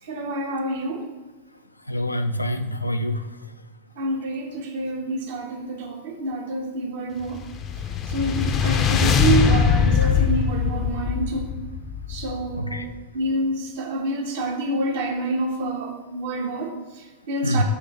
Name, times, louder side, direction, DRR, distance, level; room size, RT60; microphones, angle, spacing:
voice 1, 0.0-1.1 4.0-7.4 8.1-11.5 12.1-17.6, right 2 dB, 55° right, 3 dB, 0.9 m, -27 dB
voice 2, 1.9-3.3 10.0-10.3 12.6-12.9 17.4-17.6, equal, 85° left, 9 dB, 0.3 m, -26 dB
sound 1, 7.3-12.7, left 7 dB, 30° left, 0.5 m, -22 dB
5.7 x 3.2 x 5.4 m, 1.2 s
figure-of-eight pair, 90°, 0 cm